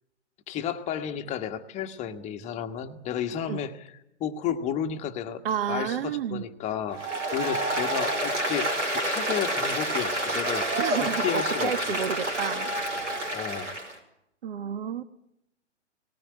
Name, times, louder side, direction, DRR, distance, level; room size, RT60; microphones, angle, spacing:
voice 1, 0.5-3.9 4.2-5.4 5.7-7.0 7.3-12.0 13.3-13.8, left 9 dB, 20° left, 8 dB, 1.4 m, -32 dB
voice 2, 5.4-6.4 10.8-12.7 14.4-15.0, right 8 dB, 50° right, 13 dB, 1.3 m, -30 dB
Applause, 6.9-13.9, right 1 dB, 90° right, 5.3 m, -28 dB
19.0 x 19.0 x 9.8 m, 0.83 s
figure-of-eight pair, 125°, 36 cm